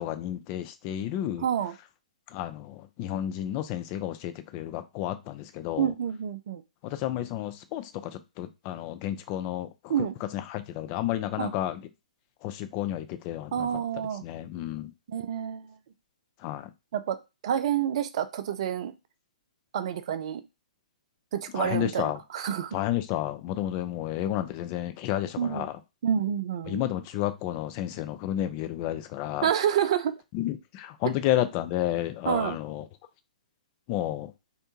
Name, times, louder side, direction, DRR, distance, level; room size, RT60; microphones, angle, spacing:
voice 1, 0.0-1.5 2.3-5.9 6.8-9.7 10.3-11.8 12.4-13.7 13.9-14.9 16.4-16.7 21.5-22.2 22.7-25.7 26.7-29.5 30.3-32.9 33.9-34.3, left 13 dB, 30° left, 0.3 m, -31 dB
voice 2, 1.4-1.7 5.8-6.6 9.9-10.1 11.4-11.5 13.5-14.2 15.1-15.7 16.9-17.2 17.4-18.9 19.7-20.4 21.3-22.8 25.4-25.7 26.0-26.8 29.4-30.2 32.3-32.6, right 9 dB, 45° right, 0.4 m, -28 dB
2.6 x 2.1 x 2.9 m
figure-of-eight pair, 120°, 4 cm